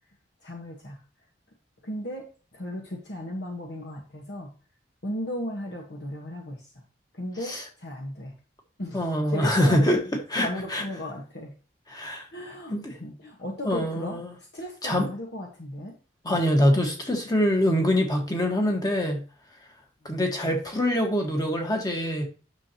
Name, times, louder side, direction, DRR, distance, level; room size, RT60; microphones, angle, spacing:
voice 1, 0.4-1.0 1.8-2.3 2.5-4.5 5.0-6.7 7.1-8.4 8.8-10.0 10.4-11.5 12.3-14.2 14.5-15.9 16.2-16.6, left 1 dB, 60° left, 1.3 m, -36 dB
voice 2, 8.9-10.0 10.3-10.8 11.9-12.2 12.7-12.9 13.6-14.3 14.8-15.1 16.2-19.2 20.0-22.3, equal, 20° left, 1.5 m, -24 dB
9.7 x 6.6 x 2.9 m
head